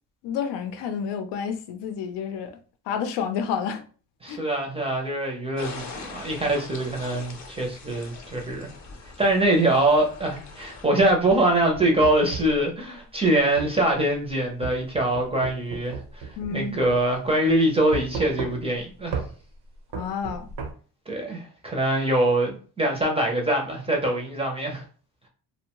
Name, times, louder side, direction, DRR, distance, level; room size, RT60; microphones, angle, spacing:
voice 1, 0.2-2.6 2.9-3.8 4.3-4.4 16.4-16.8 19.9-20.5, left 7 dB, 85° left, 0.6 m, -29 dB
voice 2, 4.2-8.7 9.2-19.2 21.1-24.8, right 1 dB, 15° right, 0.4 m, -23 dB
sound 1, 5.6-10.9, left 4 dB, 40° left, 0.6 m, -42 dB
sound 2, 11.1-12.6 13.6-13.8 14.6-16.6 16.9-17.0 17.9-18.8 19.1-19.3 19.9-20.7, right 5 dB, 75° right, 0.7 m, -34 dB
2.6 x 2.1 x 2.9 m
cardioid pair, 140°, 41 cm